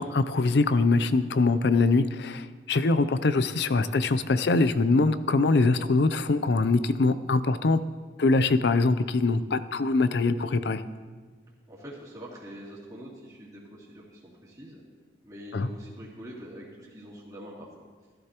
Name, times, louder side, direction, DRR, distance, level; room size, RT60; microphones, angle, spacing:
voice 1, 0.0-7.8 8.2-10.8 15.5-15.7, left 3 dB, 70° left, 13 dB, 0.5 m, -23 dB
voice 2, 11.7-14.8 15.2-17.7, equal, 20° right, -7 dB, 2.9 m, -44 dB
14.5 x 13.0 x 3.0 m, 1.5 s
head